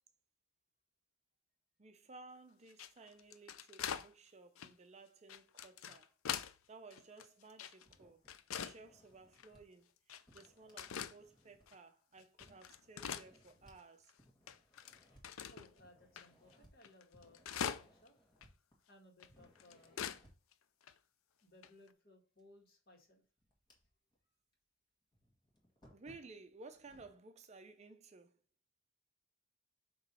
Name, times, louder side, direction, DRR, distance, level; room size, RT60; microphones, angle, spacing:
voice 1, 1.8-6.2 6.7-14.1 25.9-28.4, right 3 dB, 35° right, 0.5 m, -57 dB
sound 1, 2.7-4.1 4.6-4.7 5.3-6.6 6.9-8.0 8.3-8.8 9.3-9.5 10.1-10.5 10.8-11.2 11.7-11.8 12.2-13.8 14.1-14.2 14.5-15.7 16.2-16.3 16.5-16.6 16.8-18.1 18.4-18.5 19.2-20.2 20.5-20.6 20.8-20.9 21.6-21.9, left 8 dB, 85° left, 0.5 m, -43 dB
sound 2, 7.9-9.6 10.3-11.9 12.4-13.8 14.2-15.3 15.8-16.7 17.1-19.0 19.3-20.5 22.4-22.5 23.0-24.2 24.5-24.6 25.1-27.2, equal, 20° left, 1.7 m, -67 dB
voice 2, 15.5-18.1 18.9-20.0 21.4-23.2, left 1 dB, 50° left, 1.8 m, -63 dB
7.0 x 3.0 x 5.4 m
head